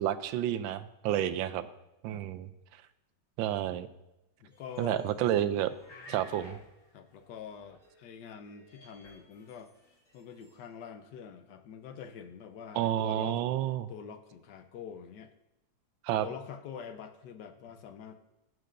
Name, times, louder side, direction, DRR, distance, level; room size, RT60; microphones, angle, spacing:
voice 1, 0.0-1.7 2.0-2.5 3.4-3.9 4.8-5.7 6.1-6.6 12.8-13.9 16.0-16.3, right 11 dB, 85° right, 13 dB, 1.3 m, -30 dB
voice 2, 4.4-5.1 6.9-9.7 10.1-13.4 13.9-15.3 16.2-18.2, left 7 dB, 70° left, 9 dB, 1.3 m, -45 dB
sound 1, 4.5-5.3 5.6-8.2 8.4-10.6, left 1 dB, 45° left, 2.4 m, -56 dB
17.0 x 7.7 x 2.5 m, 0.91 s
omnidirectional pair, 2.0 m